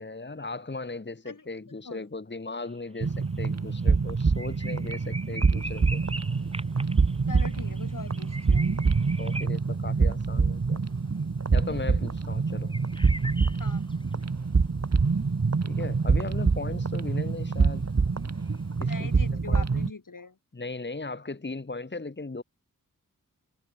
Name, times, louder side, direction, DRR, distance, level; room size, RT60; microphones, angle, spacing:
voice 1, 0.0-6.0 9.2-10.8 11.5-12.7 15.6-17.9 18.8-19.8 20.5-22.4, left 3 dB, 30° left, 1.6 m, -37 dB
sound 1, 2.7-3.0 3.3-3.4 3.8-3.9 4.2-9.5, right 1 dB, 15° right, 2.4 m, -41 dB
sound 2, 3.0-19.9, right 4 dB, 50° right, 1.5 m, -26 dB
sound 3, 5.6-19.3, left 1 dB, 15° left, 4.0 m, -51 dB
voice 2, 7.3-8.8 11.5-11.9 13.6-13.8 18.9-20.4, left 4 dB, 65° left, 4.6 m, -42 dB
wide cardioid pair, 75°, 34 cm